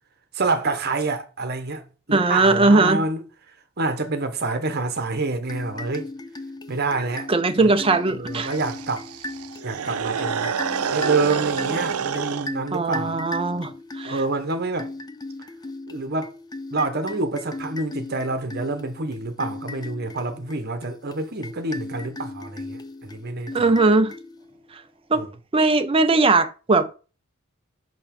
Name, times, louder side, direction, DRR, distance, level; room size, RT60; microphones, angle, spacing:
voice 1, 0.3-1.8 2.1-3.2 3.8-6.1 6.7-7.3 7.6-7.7 8.1-9.0 9.6-10.5 10.9-13.2 14.0-14.9 15.9-16.3 16.7-23.6 25.1-25.3, right 3 dB, 50° right, 1.2 m, -27 dB
voice 2, 2.1-3.0 7.3-8.5 12.7-14.2 23.5-24.1 25.1-25.2 25.5-27.0, right 3 dB, 25° right, 0.6 m, -19 dB
sound 1, 5.4-24.7, left 2 dB, 20° left, 0.5 m, -37 dB
sound 2, 8.3-12.5, right 6 dB, 85° right, 0.6 m, -28 dB
5.9 x 5.4 x 5.3 m
head